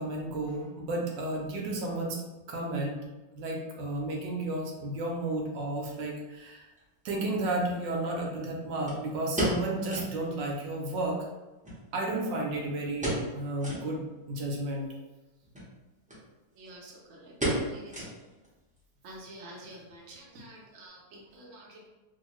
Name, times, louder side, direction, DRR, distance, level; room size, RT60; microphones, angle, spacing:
voice 1, 0.0-2.2 2.5-3.0 3.3-6.7 7.0-11.2 11.9-14.9, right 2 dB, 75° right, -1 dB, 1.3 m, -32 dB
sound 1, 6.8-6.9 8.9-10.2 10.5-10.6 10.9-11.0 11.6-12.5 13.0-13.3 13.6-13.9 14.4-14.5 15.4-15.7 16.1-16.2 16.5-16.9 17.4-18.5 18.8-18.9 19.4-19.8 20.1-20.2, right 1 dB, 10° right, 0.5 m, -33 dB
voice 2, 16.5-18.1 19.0-21.9, right 1 dB, 55° right, -3 dB, 0.9 m, -48 dB
3.1 x 2.6 x 3.0 m, 1.1 s
omnidirectional pair, 2.1 m